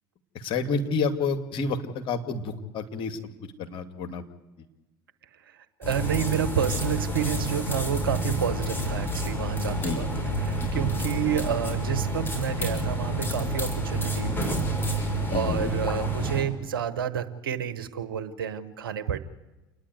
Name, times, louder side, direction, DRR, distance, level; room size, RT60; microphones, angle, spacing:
voice 1, 0.3-3.2 3.6-4.2 9.8-10.0 10.6-10.7 15.3-15.7, left 4 dB, 50° left, 6 dB, 2.3 m, -29 dB
voice 2, 5.5-10.1 10.4-14.6 15.3-19.2, right 9 dB, 80° right, 10 dB, 1.2 m, -30 dB
sound 1, 5.8-16.4, right 1 dB, 20° left, 6.5 m, -29 dB
28.5 x 10.5 x 9.6 m, 1.1 s
hypercardioid pair, 70°, 12 cm